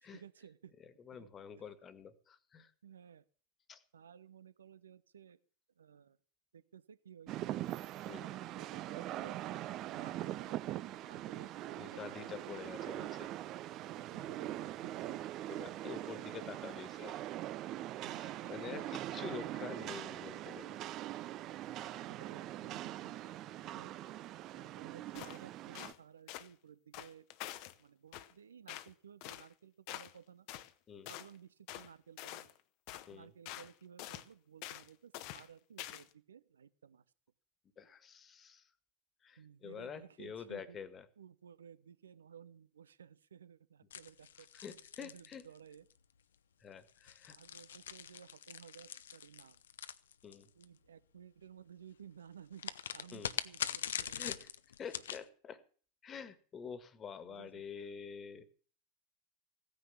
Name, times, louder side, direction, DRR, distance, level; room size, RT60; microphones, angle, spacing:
voice 1, 0.0-0.7 1.1-1.3 2.8-3.3 3.9-5.4 5.8-6.2 6.5-7.8 8.5-9.4 9.9-12.3 13.9-15.3 18.0-18.5 22.1-23.9 24.5-27.3 27.8-30.5 31.1-32.5 33.1-37.0 39.4-40.8 41.2-44.5 45.0-45.9 47.3-49.6 50.6-54.3 57.2-57.6, right 8 dB, 70° right, 16 dB, 0.9 m, -56 dB
voice 2, 1.1-2.7 3.7-3.8 8.1-8.4 11.8-13.3 15.5-17.2 18.1-20.8 30.9-31.1 33.1-33.3 37.8-38.7 39.2-41.1 44.5-45.4 46.6-47.4 50.2-50.5 53.1-53.3 54.0-54.5 54.8-55.6 56.0-58.5, left 6 dB, 25° left, 15 dB, 1.7 m, -47 dB
Rain, 7.3-25.9, right 14 dB, 40° right, 0.7 m, -42 dB
sound 1, 25.2-25.4 25.8-26.0 26.3-26.5 26.9-27.8 28.1-28.3 28.7-28.9 29.2-29.5 29.9-30.2 30.5-30.7 31.1-31.3 31.7-31.9 32.2-32.6 32.9-33.1 33.5-33.7 34.0-34.3 34.6-34.9 35.1-35.5 35.8-36.1, left 15 dB, 50° left, 1.0 m, -46 dB
sound 2, 43.9-45.9 46.9-50.6 52.6-55.2, left 9 dB, 70° left, 0.8 m, -43 dB
16.0 x 9.8 x 7.3 m, 0.43 s
figure-of-eight pair, 85°, 0 cm